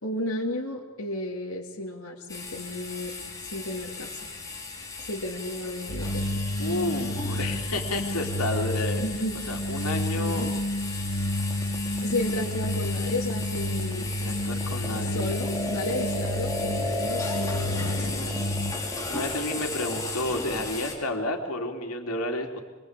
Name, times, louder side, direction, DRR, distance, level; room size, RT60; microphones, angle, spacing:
voice 1, 0.0-4.3 5.1-6.4 9.0-9.3 10.1-10.5 12.0-14.1 15.0-18.4, left 1 dB, 65° left, -3 dB, 2.8 m, -33 dB
sound 1, 2.3-20.9, left 3 dB, 15° left, 5.5 m, -37 dB
sound 2, 5.9-18.7, left 1 dB, 45° left, 2.6 m, -30 dB
voice 2, 6.6-9.0 9.5-10.5 13.9-15.3 16.7-17.0 19.1-22.6, left 1 dB, 80° left, 3 dB, 3.5 m, -31 dB
sound 3, 11.2-20.1, equal, 10° right, 4.1 m, -34 dB
26.0 x 23.0 x 8.4 m, 1.3 s
head